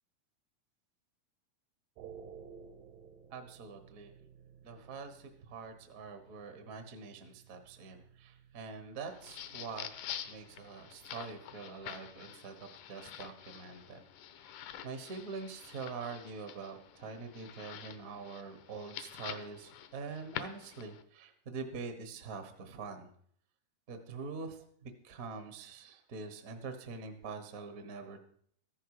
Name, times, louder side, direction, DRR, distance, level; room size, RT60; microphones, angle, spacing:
sound 1, 2.0-12.2, right 7 dB, 90° right, 2.5 m, -57 dB
voice 1, 3.3-4.1 4.6-9.9 10.2-14.0 14.3-23.1 23.9-28.2, right 4 dB, 55° right, 7 dB, 0.9 m, -45 dB
sound 2, 9.0-21.0, left 10 dB, 80° left, 2.3 m, -47 dB
14.0 x 11.0 x 4.8 m, 0.62 s
omnidirectional pair, 3.6 m